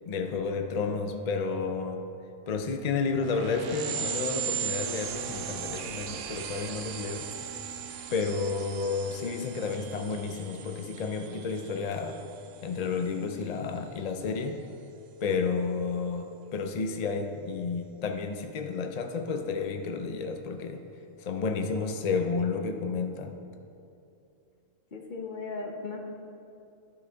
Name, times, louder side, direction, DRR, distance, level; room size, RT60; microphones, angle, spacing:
voice 1, 0.1-2.0 2.5-7.3 8.1-12.2 12.6-14.6 15.2-20.8 21.2-23.3, left 4 dB, 65° left, 4 dB, 0.4 m, -31 dB
sound 1, 3.2-13.3, right 7 dB, 80° right, 0.9 m, -38 dB
voice 2, 24.9-26.0, left 4 dB, 45° left, 3 dB, 0.9 m, -37 dB
12.0 x 6.3 x 3.4 m, 2.7 s
omnidirectional pair, 1.3 m